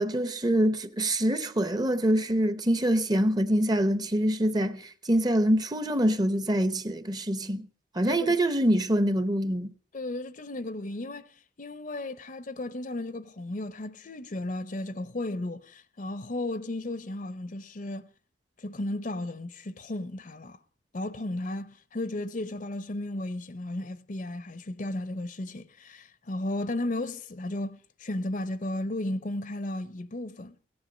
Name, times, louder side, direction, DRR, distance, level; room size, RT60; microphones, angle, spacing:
voice 1, 0.0-7.7 7.9-9.7, right 1 dB, 20° right, 0.7 m, -25 dB
voice 2, 8.0-8.4 9.9-18.1 18.6-20.6 20.9-30.6, left 1 dB, 45° left, 0.6 m, -34 dB
16.5 x 10.5 x 6.2 m
head